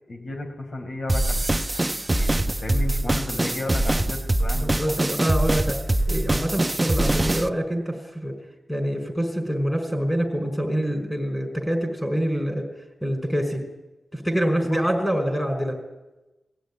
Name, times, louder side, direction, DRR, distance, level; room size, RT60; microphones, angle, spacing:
voice 1, 0.1-5.3 14.7-14.8, left 2 dB, 55° left, 3 dB, 5.6 m, -34 dB
sound 1, 1.1-7.5, right 1 dB, 20° right, 0.8 m, -23 dB
voice 2, 4.5-8.3 8.7-12.6 13.0-13.6 14.1-15.8, equal, 10° left, 4 dB, 5.3 m, -26 dB
23.0 x 16.5 x 9.9 m, 1.0 s
wide cardioid pair, 110°, 0 cm